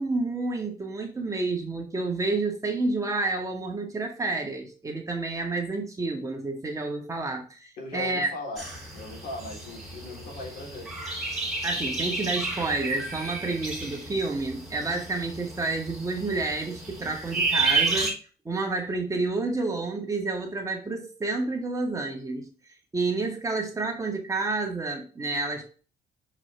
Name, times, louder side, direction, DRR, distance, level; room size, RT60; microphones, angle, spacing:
voice 1, 0.0-8.3 11.6-18.1 18.4-22.5 22.9-25.6, right 3 dB, 20° right, 1.6 m, -29 dB
voice 2, 7.8-11.0, left 2 dB, 60° left, 3.4 m, -39 dB
sound 1, 8.6-18.1, right 3 dB, ahead, 2.9 m, -31 dB
6.5 x 4.9 x 3.3 m
cardioid pair, 110°, 17 cm